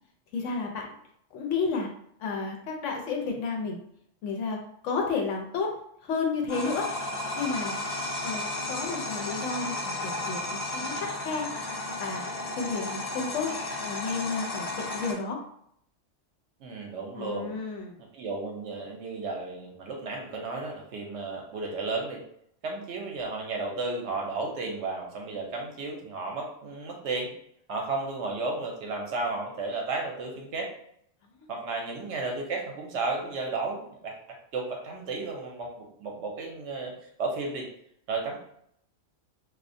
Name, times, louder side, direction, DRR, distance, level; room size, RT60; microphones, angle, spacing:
voice 1, 0.3-0.9 1.3-1.9 2.2-3.8 4.2-5.7 6.0-6.9 7.4-7.7 8.2-11.5 12.0-12.2 12.6-13.5 13.8-15.4 17.2-18.0 31.4-31.5, left 4 dB, 80° left, 1 dB, 0.9 m, -31 dB
sound 1, 6.5-15.1, left 2 dB, 55° left, 0.9 m, -33 dB
voice 2, 16.6-17.5 18.1-22.2 22.6-27.3 27.7-30.7 31.5-34.2 34.5-36.9 37.2-37.7 38.1-38.4, right 3 dB, 70° right, 0 dB, 0.9 m, -33 dB
2.4 x 2.1 x 2.5 m, 0.70 s
omnidirectional pair, 1.2 m